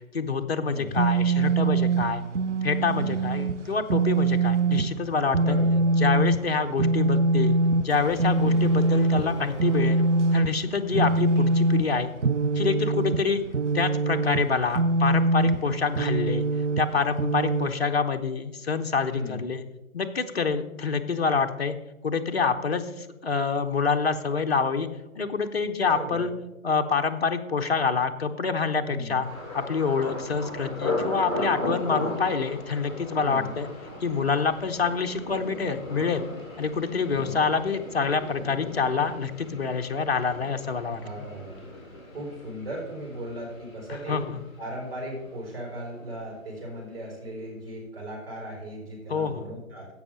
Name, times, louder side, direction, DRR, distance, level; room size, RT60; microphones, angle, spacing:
voice 1, 0.1-2.2 2.6-5.6 6.0-7.6 7.8-10.0 10.3-12.1 12.5-13.4 13.7-16.5 16.8-19.6 19.9-21.8 22.0-24.9 25.1-26.3 26.6-29.3 29.5-33.7 34.0-36.2 36.6-41.0 44.1-44.4 49.1-49.5, left 5 dB, 50° left, 5 dB, 0.9 m, -26 dB
voice 2, 0.7-1.0 2.9-3.3 5.4-5.9 10.9-11.2 19.1-19.5 25.9-26.3 28.8-29.3 33.2-33.6 37.1-37.4 40.9-41.6 42.1-44.2 44.6-49.9, right 1 dB, 45° right, -3 dB, 4.4 m, -37 dB
sound 1, 0.9-17.7, right 2 dB, 60° right, 0.7 m, -23 dB
Brass instrument, 7.9-11.0, right 2 dB, 25° right, 0.5 m, -41 dB
Thunder, 29.2-45.0 45.2-45.9 46.3-46.5, left 2 dB, 20° left, 3.1 m, -36 dB
15.5 x 5.7 x 5.1 m, 1.0 s
figure-of-eight pair, 150°, 40 cm